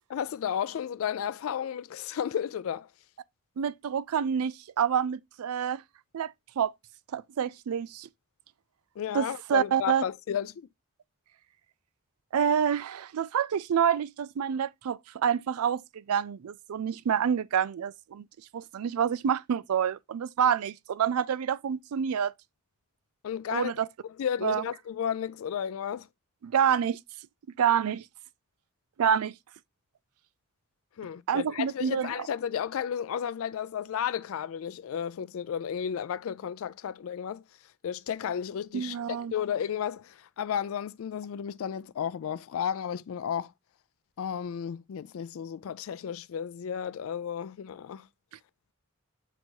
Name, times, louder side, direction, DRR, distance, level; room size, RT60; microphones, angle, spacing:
voice 1, 0.1-2.9 9.0-10.7 23.2-23.7 24.0-26.1 31.0-37.4 37.8-43.5 44.2-48.1, left 8 dB, 65° left, 0.3 m, -33 dB
voice 2, 3.6-5.8 6.1-6.7 7.1-8.1 9.1-10.0 12.3-18.2 18.5-22.3 23.5-23.9 24.4-24.6 26.4-27.0 27.6-28.0 29.0-29.3 31.3-32.1 38.7-39.3, right 8 dB, 75° right, 0.4 m, -27 dB
7.8 x 2.7 x 4.5 m
head